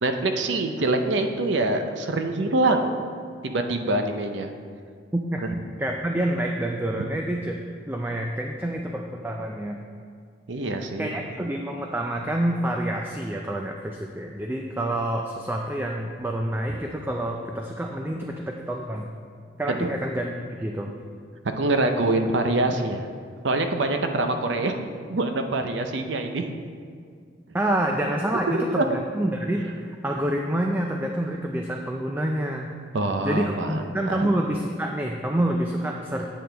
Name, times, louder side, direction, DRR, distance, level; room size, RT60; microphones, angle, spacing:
voice 1, 0.0-2.9 3.4-4.5 10.5-11.1 19.7-19.9 21.6-23.0 23.4-24.8 25.1-26.5 28.5-28.8 32.9-33.8 34.1-34.3, right 2 dB, 70° right, 6 dB, 0.6 m, -24 dB
voice 2, 5.1-5.4 5.8-7.6 7.9-9.8 11.0-19.1 19.6-20.9 27.5-32.7 33.2-36.3, right 1 dB, 10° right, 1 dB, 0.4 m, -27 dB
8.7 x 7.7 x 3.4 m, 2.1 s
head